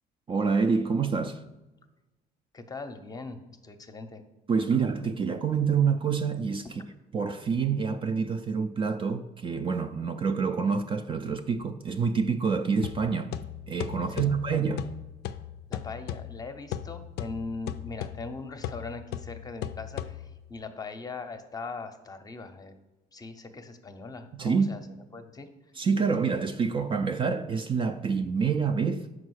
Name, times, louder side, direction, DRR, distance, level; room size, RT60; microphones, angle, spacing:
voice 1, 0.3-1.4 4.5-6.7 7.1-13.4 13.7-14.9 24.4-24.8 25.8-29.1, right 5 dB, 30° right, 0.4 m, -27 dB
voice 2, 2.5-4.2 14.0-14.4 15.7-22.7 23.1-24.8 25.1-25.5, left 3 dB, 20° left, 0.7 m, -40 dB
sound 1, 12.8-20.6, left 11 dB, 80° left, 0.4 m, -38 dB
5.2 x 4.8 x 6.3 m
cardioid pair, 110°, 17 cm